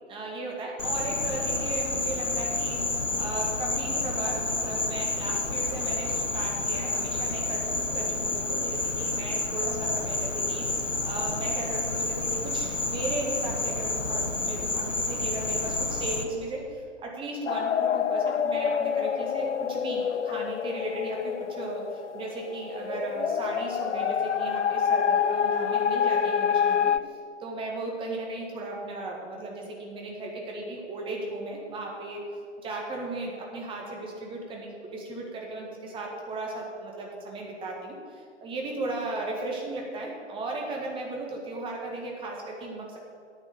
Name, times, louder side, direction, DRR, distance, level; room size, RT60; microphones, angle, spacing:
voice 1, 0.1-26.9 27.4-32.2 32.6-43.0, right 2 dB, 15° right, -1 dB, 1.7 m, -36 dB
Insect, 0.8-16.2, left 3 dB, 85° left, 1.1 m, -29 dB
sound 1, 17.5-27.0, left 7 dB, 70° left, 0.5 m, -27 dB
9.4 x 8.4 x 6.7 m, 2.3 s
figure-of-eight pair, 120°, 36 cm